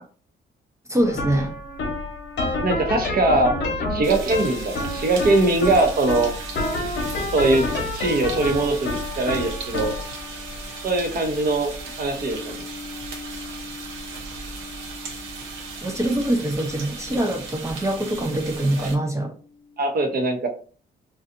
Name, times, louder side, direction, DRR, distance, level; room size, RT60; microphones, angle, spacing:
voice 1, 0.9-1.6 15.8-19.3, right 1 dB, 15° right, 0.5 m, -24 dB
sound 1, 1.0-18.2, left 2 dB, 60° left, 0.8 m, -31 dB
voice 2, 2.6-3.5 3.9-6.3 7.3-7.7 7.9-9.9 10.8-11.7 12.0-12.6 18.8-18.9 19.8-20.5, right 2 dB, 50° right, 0.8 m, -21 dB
sound 2, 4.0-18.9, right 4 dB, 85° right, 0.7 m, -37 dB
2.6 x 2.3 x 2.5 m
cardioid pair, 90°, 20 cm